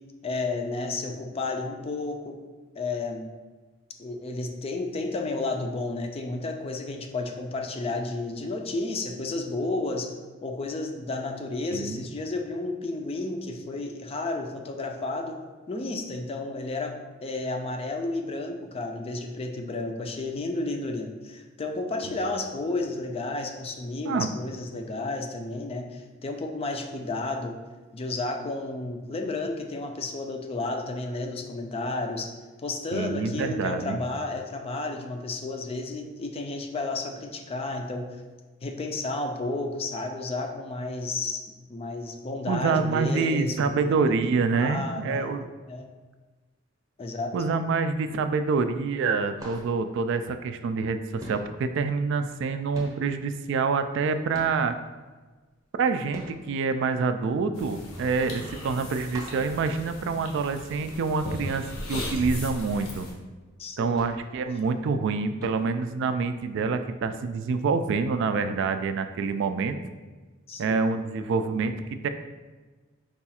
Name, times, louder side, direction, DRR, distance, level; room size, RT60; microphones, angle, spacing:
voice 1, 0.2-2.4 2.8-3.3 4.0-10.1 10.4-15.4 15.7-16.9 17.2-27.6 27.9-32.3 32.6-38.2 38.6-43.9 44.5-45.3 45.7-45.9 47.0-47.3 63.6-64.4 70.5-70.8, left 2 dB, 30° left, 4 dB, 0.4 m, -32 dB
voice 2, 11.7-12.0 24.0-24.3 32.9-34.0 42.5-45.4 47.3-54.7 55.8-63.1 63.8-69.8 70.6-72.1, right 4 dB, 65° right, 9 dB, 0.3 m, -27 dB
sound 1, 48.4-48.7 49.0-50.9 51.2-54.9 55.4-60.7 61.0-61.1 61.5-61.7 62.2-65.0 65.4-65.9 66.6-66.7, equal, 15° right, 0.7 m, -46 dB
sound 2, 57.5-63.1, left 1 dB, 90° left, 0.9 m, -37 dB
4.8 x 2.3 x 4.2 m, 1.3 s
head